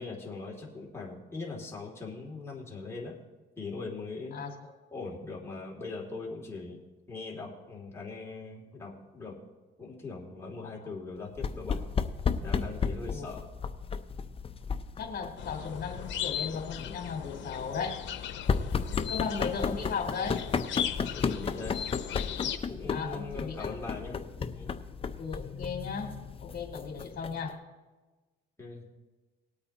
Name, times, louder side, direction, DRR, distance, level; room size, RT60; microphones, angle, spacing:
voice 1, 0.0-3.2 3.6-4.4 4.9-6.8 7.1-9.4 9.8-11.8 12.4-13.5 18.8-19.1 21.1-21.8 22.4-24.2 24.5-24.7 28.6-28.9, left 3 dB, 15° left, -3 dB, 2.6 m, -41 dB
sound 1, 11.4-27.5, left 5 dB, 30° left, 0.6 m, -34 dB
voice 2, 15.0-18.0 19.1-20.4 22.9-23.7 25.2-27.6, left 5 dB, 45° left, 2 dB, 2.3 m, -36 dB
sound 2, 15.4-22.6, left 9 dB, 70° left, 0.9 m, -37 dB
20.0 x 8.6 x 2.9 m, 1.2 s
cardioid pair, 105°, 20 cm